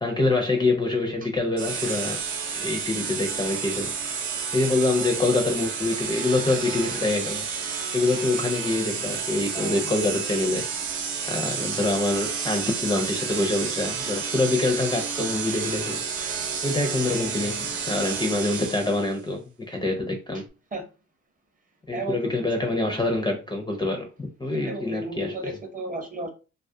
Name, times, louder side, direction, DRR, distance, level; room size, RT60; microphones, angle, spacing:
voice 1, 0.0-2.2 2.5-3.9 4.5-7.5 7.9-10.7 11.3-16.0 16.6-20.4 21.9-25.6, left 2 dB, 15° left, 0.4 m, -25 dB
sound 1, 1.6-19.1, right 6 dB, 70° right, 0.7 m, -31 dB
voice 2, 9.5-9.9 20.7-20.8 21.9-22.7 24.6-26.3, right 2 dB, 30° right, 0.6 m, -34 dB
2.3 x 2.1 x 2.6 m
cardioid pair, 90°, 30 cm